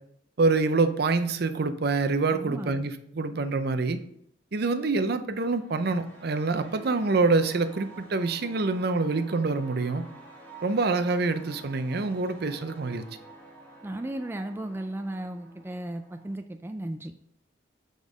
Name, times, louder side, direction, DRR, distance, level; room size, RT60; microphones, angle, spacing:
voice 1, 0.4-4.0 4.5-10.1 10.6-13.0, right 3 dB, 60° right, 10 dB, 0.6 m, -26 dB
voice 2, 2.3-2.7 13.8-17.1, right 1 dB, 10° right, 6 dB, 0.3 m, -35 dB
sound 1, 5.3-16.3, right 2 dB, 10° left, 1.5 m, -49 dB
6.3 x 5.3 x 4.9 m, 0.72 s
head